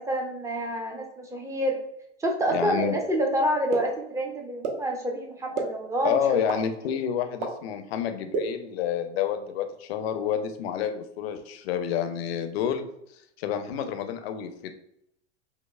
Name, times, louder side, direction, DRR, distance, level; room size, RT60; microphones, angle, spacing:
voice 1, 0.0-1.8 2.2-6.4, right 1 dB, 10° right, 2 dB, 0.4 m, -28 dB
voice 2, 2.5-3.0 6.0-12.8 13.4-14.7, left 9 dB, 60° left, 8 dB, 0.5 m, -29 dB
sound 1, 3.7-3.8 4.6-4.7 5.6-5.7 6.5-6.6 7.4-7.5 8.3-8.4, right 5 dB, 55° right, 0.8 m, -27 dB
5.3 x 2.0 x 2.2 m, 0.75 s
hypercardioid pair, 90°, 36 cm